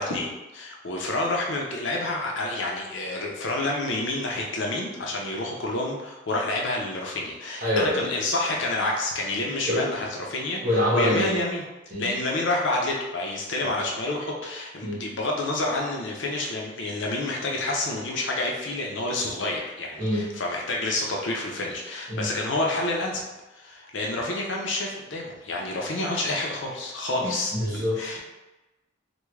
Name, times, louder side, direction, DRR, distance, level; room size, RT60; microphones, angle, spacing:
voice 1, 0.0-10.6 10.9-23.2 23.5-28.2, left 2 dB, 60° left, -1 dB, 0.6 m, -29 dB
voice 2, 7.6-8.0 9.7-9.9 10.6-11.4 11.9-12.1 14.8-15.0 20.0-20.2 22.1-22.3 27.2-28.2, left 1 dB, 45° right, -8 dB, 1.3 m, -25 dB
3.5 x 2.2 x 3.2 m, 1.1 s
head